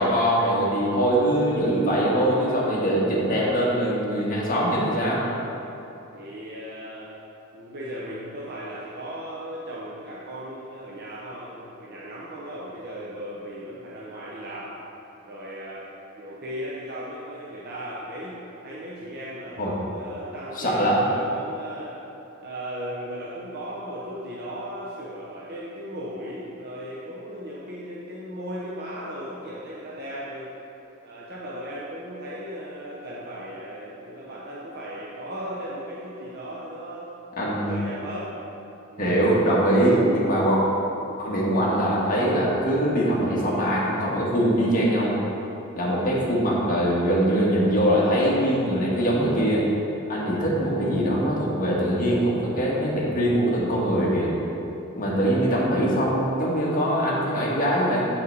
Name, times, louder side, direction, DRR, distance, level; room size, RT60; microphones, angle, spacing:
voice 1, 0.0-5.2 19.6-19.7 20.6-21.0 37.4-37.8 39.0-40.6 41.2-45.2 45.8-49.7 50.1-54.3 54.9-58.1, equal, 40° left, -6 dB, 1.5 m, -22 dB
voice 2, 6.1-7.1 7.5-14.7 15.3-15.9 16.2-18.4 18.6-22.0 22.4-30.5 31.0-37.1 37.7-38.3 38.9-39.2, equal, 50° right, -6 dB, 0.8 m, -36 dB
8.5 x 5.4 x 4.0 m, 2.9 s
head